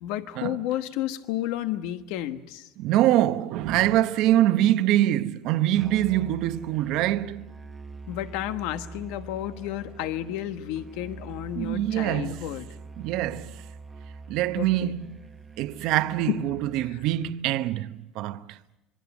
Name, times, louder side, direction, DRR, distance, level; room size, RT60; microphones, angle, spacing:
voice 1, 0.0-2.6 8.1-12.7 14.6-14.9 16.3-16.4, left 13 dB, 85° left, 1.3 m, -31 dB
voice 2, 2.8-7.5 11.5-12.5 13.0-13.7 14.3-15.2 15.6-18.6, right 13 dB, 70° right, 0.9 m, -24 dB
Musical instrument, 5.7-17.5, right 4 dB, 20° right, 0.9 m, -45 dB
27.0 x 23.0 x 6.0 m
cardioid pair, 140°, 0 cm